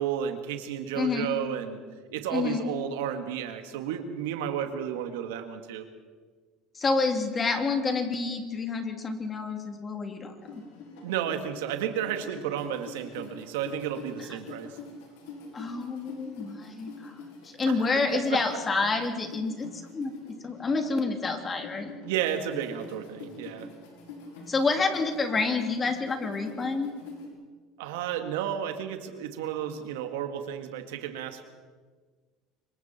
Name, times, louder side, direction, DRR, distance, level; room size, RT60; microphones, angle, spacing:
voice 1, 0.0-1.8 2.1-5.8 11.0-14.8 18.1-18.4 22.0-23.7 27.8-31.4, right 9 dB, 85° right, 7 dB, 2.1 m, -32 dB
voice 2, 0.9-1.4 2.3-2.7 6.7-10.6 14.2-14.3 15.5-17.1 17.4-20.1 20.4-21.9 24.5-26.9, left 4 dB, 25° left, 4 dB, 3.2 m, -28 dB
sound 1, 10.4-27.3, left 3 dB, 90° left, 5.9 m, -45 dB
26.0 x 23.0 x 4.5 m, 1.5 s
supercardioid pair, 100°, 0 cm